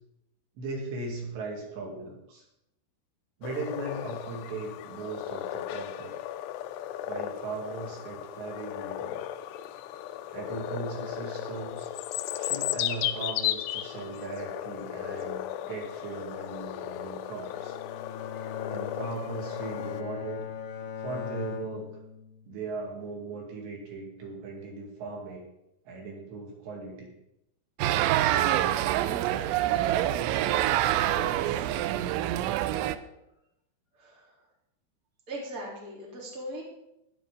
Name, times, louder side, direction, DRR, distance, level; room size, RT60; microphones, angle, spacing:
voice 1, 0.6-2.4 3.4-6.2 7.1-9.2 10.3-11.9 12.4-17.8 18.7-20.4 21.0-21.9 22.5-25.5 25.9-27.1, right 3 dB, 70° right, -1 dB, 4.6 m, -38 dB
sound 1, 3.4-20.0, left 12 dB, 80° left, 2.5 m, -35 dB
Bowed string instrument, 17.4-22.7, left 8 dB, 60° left, 2.6 m, -39 dB
sound 2, 27.8-33.0, right 13 dB, 85° right, 3.0 m, -26 dB
voice 2, 30.8-31.7 33.9-34.4 35.3-36.6, equal, 20° right, -3 dB, 3.3 m, -40 dB
12.5 x 11.0 x 5.1 m, 0.86 s
omnidirectional pair, 5.4 m